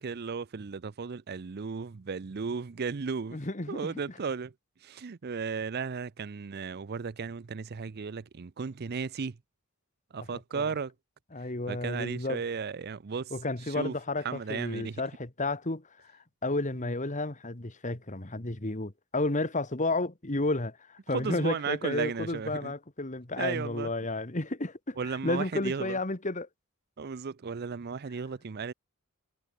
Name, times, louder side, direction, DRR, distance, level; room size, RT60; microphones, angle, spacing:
voice 1, 0.0-3.4 3.7-4.5 4.8-9.4 10.1-10.9 11.7-13.3 13.7-13.9 14.2-15.0 21.1-22.7 23.4-23.9 25.0-26.0 27.0-28.7, right 5 dB, 45° right, 0.5 m, -35 dB
voice 2, 3.3-4.0 10.2-10.7 11.3-12.4 13.3-16.1 16.4-26.5, left 2 dB, 35° left, 1.8 m, -32 dB
head